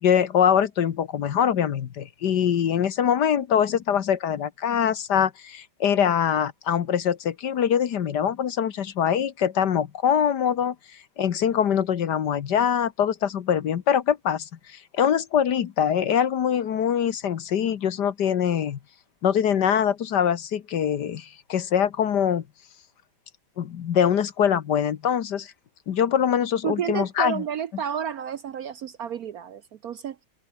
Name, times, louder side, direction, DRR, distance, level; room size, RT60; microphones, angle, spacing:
voice 1, 0.0-10.7 11.2-18.8 19.2-22.4 23.6-25.5 25.9-27.4, left 8 dB, 60° left, 1.7 m, -23 dB
voice 2, 26.6-30.3, right 8 dB, 60° right, 1.1 m, -31 dB
omnidirectional pair, 2.1 m